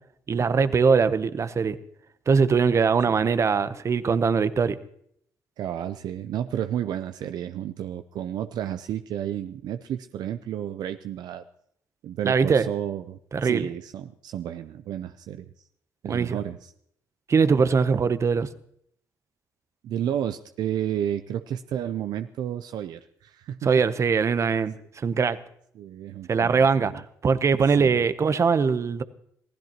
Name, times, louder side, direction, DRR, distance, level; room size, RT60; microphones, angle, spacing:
voice 1, 0.3-1.8 2.3-4.8 12.2-12.7 13.3-13.7 16.0-16.4 17.3-18.5 23.6-25.4 26.3-29.0, right 5 dB, 40° right, 0.8 m, -22 dB
voice 2, 5.6-11.4 12.0-15.5 16.0-16.7 19.8-23.7 25.8-27.0 27.8-28.0, right 10 dB, 70° right, 0.6 m, -32 dB
25.5 x 16.0 x 3.0 m
supercardioid pair, 65°, 7 cm